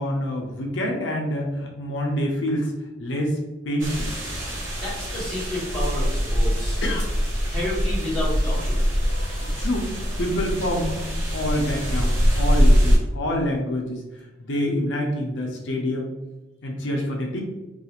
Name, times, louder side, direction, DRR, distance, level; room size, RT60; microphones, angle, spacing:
voice 1, 0.0-2.7 3.0-3.4 3.6-4.1 6.8-7.1 9.6-14.0 14.4-16.1 16.6-17.4, left 1 dB, 75° left, 0 dB, 0.5 m, -26 dB
sound 1, 3.8-13.0, equal, 80° right, 0.8 m, -23 dB
voice 2, 4.8-6.8 7.5-8.8 16.9-17.0, left 1 dB, ahead, -10 dB, 1.1 m, -30 dB
2.4 x 2.4 x 2.8 m, 1.1 s
head